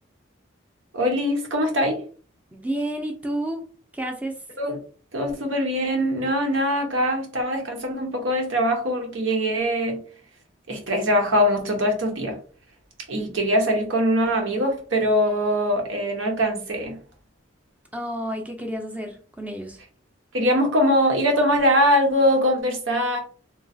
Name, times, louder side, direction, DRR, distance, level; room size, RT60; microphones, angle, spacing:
voice 1, 0.9-2.0 4.6-4.8 5.1-10.0 10.7-12.4 13.1-17.0 20.3-23.2, equal, 80° right, 0.9 m, -22 dB
voice 2, 2.5-3.6 3.9-4.3 17.9-19.8, right 1 dB, 5° right, 0.5 m, -30 dB
3.0 x 2.3 x 2.6 m
head